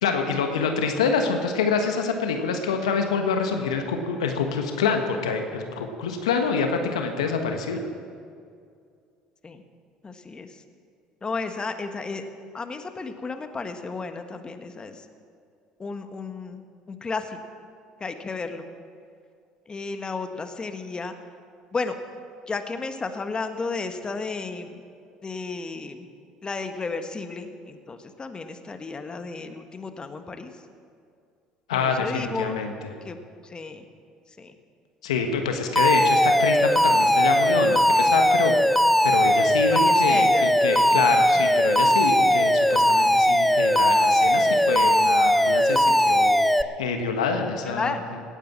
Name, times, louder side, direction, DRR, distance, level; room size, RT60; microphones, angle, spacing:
voice 1, 0.0-7.8 31.7-32.9 35.0-38.5 39.0-46.3 46.8-48.2, left 5 dB, 85° left, 5 dB, 1.3 m, -26 dB
voice 2, 10.0-10.5 11.2-12.2 12.5-14.9 15.8-17.3 18.0-18.6 19.7-21.1 21.7-22.0 22.5-24.7 25.2-26.0 26.4-30.5 31.8-32.6 33.0-33.2 33.5-33.8 34.4-34.5 39.7-40.4 47.7-48.0, left 4 dB, 25° left, 7 dB, 1.4 m, -33 dB
Alarm, 35.8-46.6, equal, 5° left, 0.6 m, -19 dB
17.5 x 9.0 x 7.3 m, 2.3 s
hypercardioid pair, 65°, 3 cm